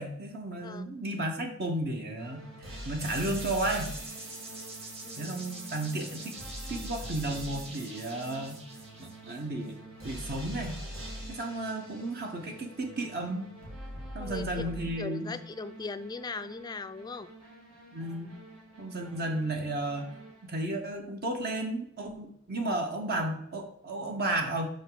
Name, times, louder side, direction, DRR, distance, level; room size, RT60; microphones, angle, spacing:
voice 1, 0.0-3.9 5.2-6.4 6.7-8.6 9.0-9.7 10.0-10.8 11.3-13.5 14.1-15.4 17.9-18.3 18.8-20.1 20.4-24.7, right 1 dB, 50° right, 3 dB, 0.9 m, -33 dB
sound 1, 2.2-20.7, equal, 85° right, 1.8 m, -44 dB
sound 2, 3.0-9.7, right 2 dB, 30° right, 1.5 m, -44 dB
voice 2, 5.0-5.4 14.2-14.7 15.0-17.3, left 4 dB, 20° left, 11 dB, 0.3 m, -39 dB
5.6 x 5.2 x 3.8 m, 0.71 s
head